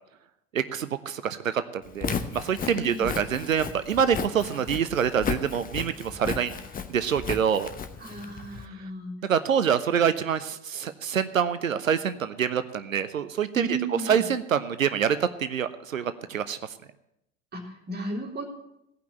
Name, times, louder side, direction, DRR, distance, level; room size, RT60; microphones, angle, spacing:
voice 1, 0.5-6.5 6.9-7.7 8.8-8.9 9.2-13.8 14.1-16.7, right 7 dB, 80° right, 12 dB, 0.6 m, -26 dB
Walk footsteps, 1.9-8.7, left 6 dB, 20° left, 0.9 m, -35 dB
voice 2, 2.7-3.1 8.0-9.1 13.5-14.3 17.5-18.4, right 2 dB, 25° right, 0 dB, 3.0 m, -34 dB
16.5 x 5.8 x 7.5 m, 0.83 s
figure-of-eight pair, 70°, 39 cm